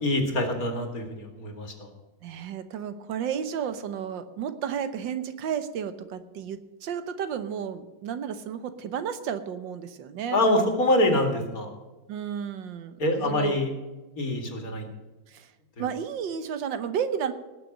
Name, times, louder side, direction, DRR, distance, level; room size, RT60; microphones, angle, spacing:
voice 1, 0.0-1.9 10.3-11.7 13.0-13.7 14.2-14.9, left 1 dB, 50° left, 4 dB, 2.5 m, -25 dB
voice 2, 2.2-10.4 12.1-13.6 15.3-15.5 15.8-17.3, right 8 dB, 90° right, 11 dB, 1.7 m, -32 dB
18.5 x 6.4 x 6.5 m, 1.2 s
omnidirectional pair, 1.9 m